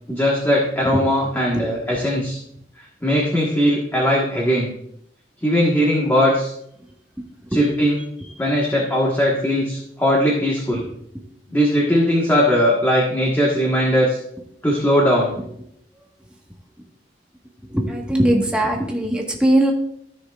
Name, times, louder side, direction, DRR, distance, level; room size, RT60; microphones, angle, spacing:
voice 1, 0.1-2.4 3.0-4.7 5.4-6.5 7.5-8.0 8.4-10.8 11.5-14.2 14.6-15.4, equal, 10° left, -4 dB, 1.5 m, -19 dB
voice 2, 17.7-19.7, right 1 dB, 5° right, -1 dB, 1.5 m, -19 dB
14.5 x 6.3 x 2.5 m, 0.71 s
head